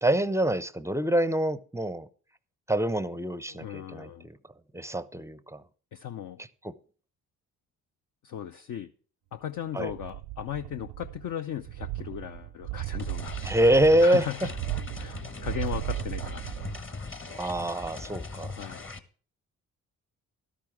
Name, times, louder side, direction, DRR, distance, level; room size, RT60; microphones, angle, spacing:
voice 1, 0.0-2.1 2.7-4.4 4.7-5.6 6.6-6.7 9.7-9.9 13.4-14.2 17.3-18.6, right 1 dB, 5° right, 0.5 m, -25 dB
voice 2, 3.5-4.3 5.9-6.4 8.2-8.9 9.3-14.5 15.0-16.4 18.6-18.8, left 10 dB, 50° left, 0.6 m, -37 dB
sound 1, 9.9-11.3 11.6-16.9 17.3-17.4, right 17 dB, 75° right, 0.6 m, -36 dB
sound 2, 13.0-19.0, left 3 dB, 30° left, 1.2 m, -40 dB
12.0 x 10.5 x 3.5 m
hypercardioid pair, 40°, 41 cm